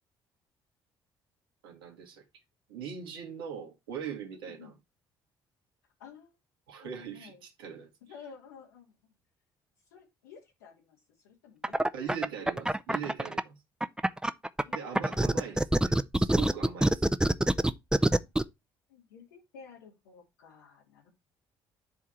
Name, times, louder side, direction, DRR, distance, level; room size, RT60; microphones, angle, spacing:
voice 1, 1.6-2.2 2.7-4.7 6.7-7.9 11.9-13.6 14.7-17.1, right 7 dB, 80° right, 2.0 m, -41 dB
voice 2, 4.4-4.8 6.0-6.3 6.8-7.4 8.1-9.1 9.9-12.2 14.6-15.5 17.9-18.3 18.9-21.1, left 6 dB, 80° left, 3.2 m, -53 dB
sound 1, 11.6-13.4 13.8-18.4, right 1 dB, 5° right, 0.7 m, -25 dB
10.5 x 3.6 x 4.4 m
hypercardioid pair, 50°, 12 cm